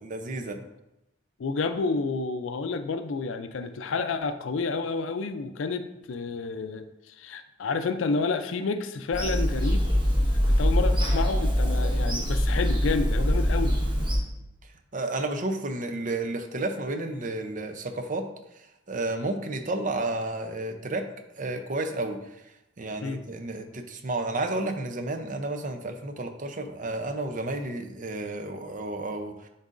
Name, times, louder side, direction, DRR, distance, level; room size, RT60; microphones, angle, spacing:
voice 1, 0.0-0.6 14.9-18.3 18.9-21.1 21.4-22.2 22.8-29.3, right 2 dB, 45° right, 6 dB, 0.6 m, -31 dB
voice 2, 1.4-9.9 10.5-13.8 23.0-23.2, left 4 dB, 85° left, 9 dB, 0.4 m, -30 dB
Bird vocalization bird call bird song / Telephone, 9.1-14.2, equal, 25° right, 1.3 m, -23 dB
10.0 x 4.0 x 2.5 m, 0.89 s
head